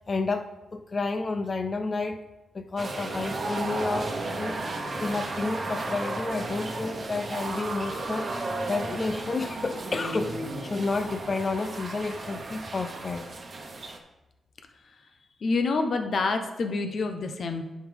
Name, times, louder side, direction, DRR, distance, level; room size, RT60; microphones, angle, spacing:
voice 1, 0.1-2.3 2.5-8.3 8.7-13.3, left 3 dB, 40° left, 0.5 m, -31 dB
sound 1, 2.8-14.0, right 2 dB, 45° right, 1.0 m, -34 dB
voice 2, 15.4-17.6, left 3 dB, 60° left, 0.9 m, -27 dB
9.8 x 5.2 x 3.5 m
cardioid pair, 75°, 0 cm